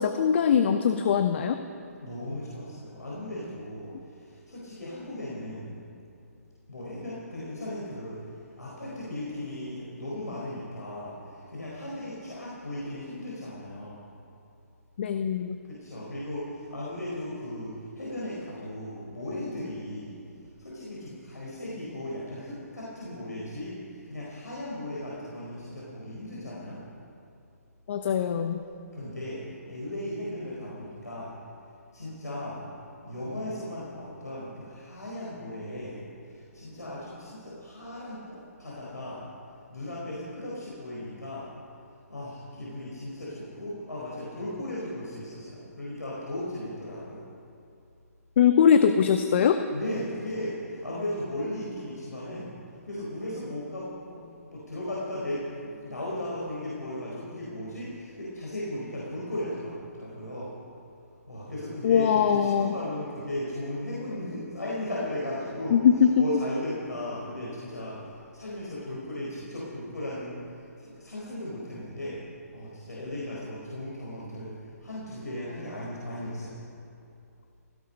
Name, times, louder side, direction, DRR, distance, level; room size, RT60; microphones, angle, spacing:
voice 1, 0.0-1.6 15.0-15.6 27.9-28.6 48.4-49.6 61.8-62.7 65.7-66.1, left 8 dB, 45° left, 8 dB, 0.8 m, -21 dB
voice 2, 2.0-5.8 6.7-8.2 8.6-14.0 15.6-20.2 20.6-26.8 28.9-31.3 31.9-32.6 33.0-39.3 39.7-41.5 42.1-47.2 49.7-52.5 52.8-60.5 61.3-65.8 66.2-68.0 68.3-72.2 72.5-76.6, left 1 dB, 85° left, -6 dB, 4.6 m, -36 dB
17.0 x 16.0 x 5.3 m, 2.6 s
figure-of-eight pair, 135°, 9 cm